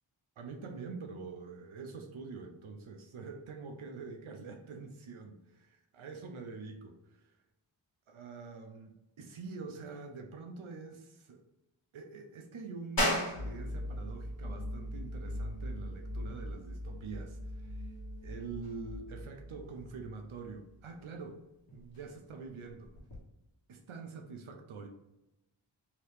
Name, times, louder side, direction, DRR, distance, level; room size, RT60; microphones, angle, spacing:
voice 1, 0.4-7.4 8.1-11.4 11.9-17.9 18.2-21.4 21.7-22.9 23.7-24.9, right 4 dB, 75° right, 4 dB, 0.6 m, -45 dB
sound 1, 13.0-23.2, left 1 dB, 45° left, 1.0 m, -40 dB
sound 2, 13.3-20.7, equal, 25° left, 0.7 m, -41 dB
2.9 x 2.8 x 3.3 m, 0.93 s
wide cardioid pair, 55°, 49 cm